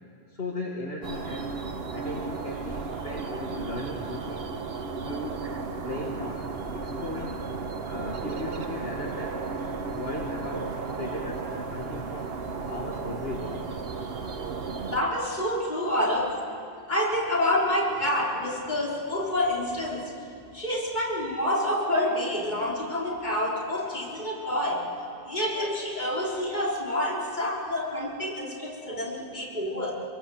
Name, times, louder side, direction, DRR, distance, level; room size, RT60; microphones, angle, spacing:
voice 1, 0.3-1.6 1.9-4.5 5.0-5.5 5.8-7.4 7.8-9.5 9.8-13.7, left 2 dB, 70° left, -1 dB, 2.0 m, -37 dB
sound 1, 1.0-15.0, right 4 dB, 70° right, 1.3 m, -34 dB
voice 2, 14.9-16.4 16.9-20.1 20.5-24.9 25.2-29.9, left 1 dB, 45° left, -3 dB, 4.1 m, -28 dB
25.5 x 22.0 x 7.8 m, 2.4 s
omnidirectional pair, 1.1 m